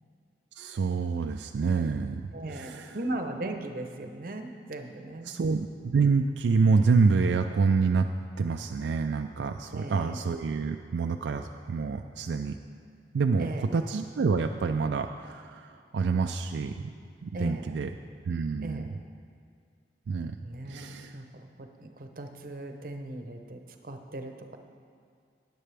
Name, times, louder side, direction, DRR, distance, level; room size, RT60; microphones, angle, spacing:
voice 1, 0.6-3.0 5.3-8.1 8.4-12.6 13.1-16.9 17.2-17.9 18.3-18.9 20.1-20.4 20.7-21.2, right 4 dB, 80° right, 5 dB, 0.4 m, -27 dB
voice 2, 2.3-5.3 9.7-10.3 13.4-13.8 17.3-17.8 18.6-18.9 20.4-24.6, right 1 dB, 50° right, 5 dB, 0.8 m, -38 dB
14.0 x 9.8 x 3.4 m, 2.3 s
head